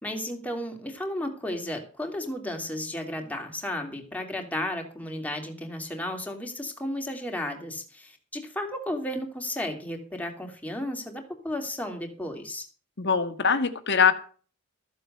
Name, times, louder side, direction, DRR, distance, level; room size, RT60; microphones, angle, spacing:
voice 1, 0.0-12.6, left 1 dB, 5° left, 3 dB, 2.6 m, -33 dB
voice 2, 13.0-14.1, left 6 dB, 55° left, 9 dB, 1.6 m, -22 dB
14.0 x 7.8 x 6.6 m, 0.40 s
head